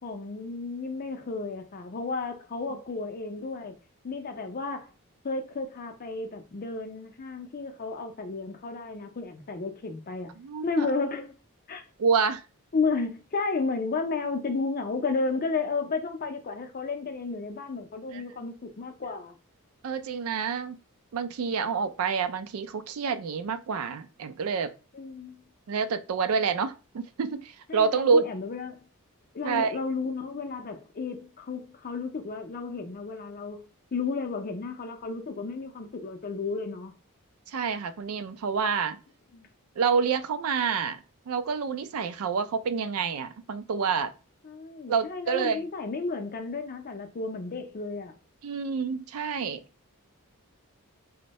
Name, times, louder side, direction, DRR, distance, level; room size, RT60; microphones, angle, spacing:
voice 1, 0.0-3.7 4.0-4.9 5.2-10.3 10.6-11.3 11.7-11.8 12.7-19.3 24.9-25.4 27.7-28.8 29.3-36.9 39.3-39.5 44.4-48.1, left 4 dB, 40° left, 0.5 m, -33 dB
voice 2, 10.4-10.9 12.0-12.4 18.1-18.2 19.8-20.8 21.1-24.7 25.7-28.3 29.4-29.8 37.5-39.0 39.8-41.0 41.3-44.1 44.9-45.6 48.4-49.6, right 5 dB, 70° right, 0.4 m, -28 dB
2.6 x 2.1 x 4.0 m
head